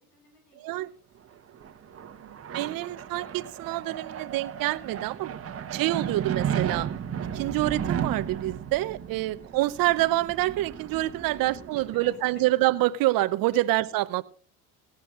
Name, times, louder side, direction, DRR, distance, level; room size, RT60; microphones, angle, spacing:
voice 1, 0.0-1.8 2.1-2.7 9.1-9.6 11.3-11.4 11.8-12.4, left 2 dB, 90° left, 3 dB, 7.4 m, -60 dB
voice 2, 0.6-0.9 2.2-5.4 5.7-6.9 7.3-14.2, right 17 dB, 50° right, 14 dB, 0.8 m, -27 dB
sound 1, 1.3-12.6, right 8 dB, 30° right, 1.3 m, -34 dB
18.0 x 14.5 x 2.6 m, 0.40 s
hypercardioid pair, 80°, 45 cm